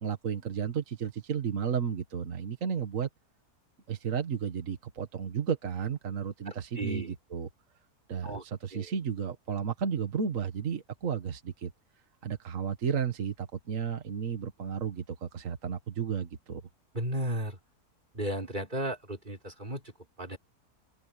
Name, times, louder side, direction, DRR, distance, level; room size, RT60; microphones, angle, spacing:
voice 1, 0.0-3.1 3.9-7.5 8.1-11.7 12.2-16.6, right 7 dB, 55° right, 1.9 m, -33 dB
voice 2, 6.5-7.1 8.2-8.4 8.7-8.9 16.9-17.6 18.1-20.4, right 1 dB, 30° right, 4.2 m, -35 dB
omnidirectional pair, 1.7 m